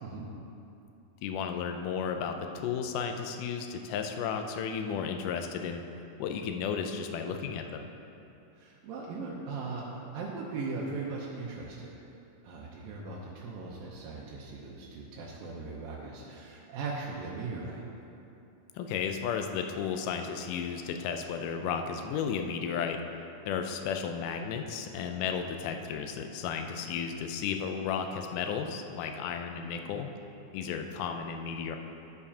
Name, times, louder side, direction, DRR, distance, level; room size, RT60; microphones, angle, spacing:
voice 1, 1.2-5.8 6.2-7.9 18.8-23.0 23.5-30.1 30.5-31.8, left 7 dB, 80° left, 5 dB, 2.0 m, -33 dB
voice 2, 8.6-11.9 12.4-17.8, right 3 dB, 80° right, -5 dB, 2.6 m, -39 dB
13.5 x 6.9 x 2.8 m, 2.8 s
omnidirectional pair, 4.0 m